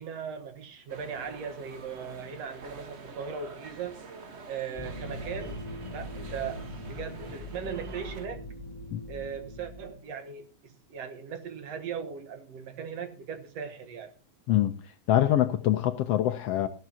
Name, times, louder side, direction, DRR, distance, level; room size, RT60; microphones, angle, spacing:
voice 1, 0.0-4.0 4.5-5.7 5.9-6.6 6.9-8.4 9.1-14.1, right 7 dB, 65° right, 2.4 m, -38 dB
sound 1, 0.9-8.3, right 4 dB, 85° right, 0.5 m, -47 dB
sound 2, 4.7-10.0, equal, 15° left, 2.3 m, -41 dB
voice 2, 15.1-16.7, left 12 dB, 70° left, 1.6 m, -24 dB
16.0 x 12.0 x 2.8 m
omnidirectional pair, 3.3 m